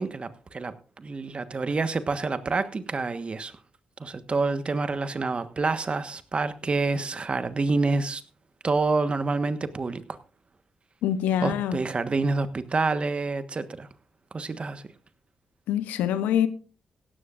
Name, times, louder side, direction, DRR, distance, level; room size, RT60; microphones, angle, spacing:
voice 1, 0.0-3.5 4.0-8.2 8.6-10.0 11.4-13.9 14.3-14.8, right 3 dB, 45° right, 1.3 m, -27 dB
voice 2, 11.0-11.8 15.7-16.5, left 10 dB, 85° left, 0.8 m, -25 dB
17.0 x 13.0 x 2.5 m
supercardioid pair, 50°, 3 cm